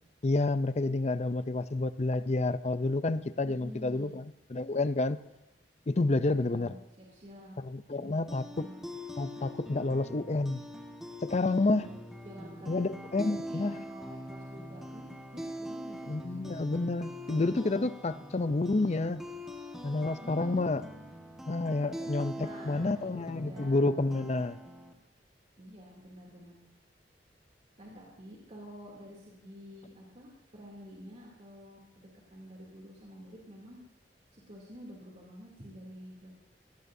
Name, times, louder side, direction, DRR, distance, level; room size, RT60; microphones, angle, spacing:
voice 1, 0.2-5.2 5.9-6.7 7.6-8.7 9.2-10.6 11.2-11.9 12.7-13.7 16.1-19.2 19.8-20.8 21.5-24.6, left 2 dB, 40° left, 13 dB, 0.5 m, -29 dB
voice 2, 3.5-4.2 6.3-7.6 8.0-8.8 11.7-12.9 13.3-16.1 20.2-20.7 22.3-23.7 25.6-26.6 27.8-33.8 34.3-36.3, equal, 40° right, -3 dB, 2.8 m, -49 dB
sound 1, 8.0-24.9, equal, 5° right, 1.4 m, -43 dB
22.5 x 18.0 x 2.7 m, 0.92 s
head